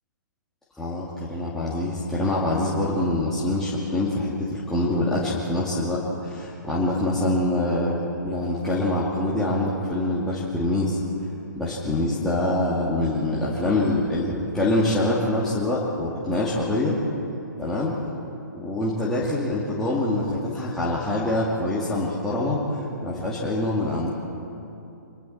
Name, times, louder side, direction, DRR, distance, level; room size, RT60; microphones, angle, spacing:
voice 1, 0.8-11.0 11.5-17.0 17.6-18.0 18.5-24.1, left 1 dB, 5° left, -8 dB, 2.5 m, -25 dB
26.0 x 23.5 x 4.3 m, 2.8 s
figure-of-eight pair, 125°, 10 cm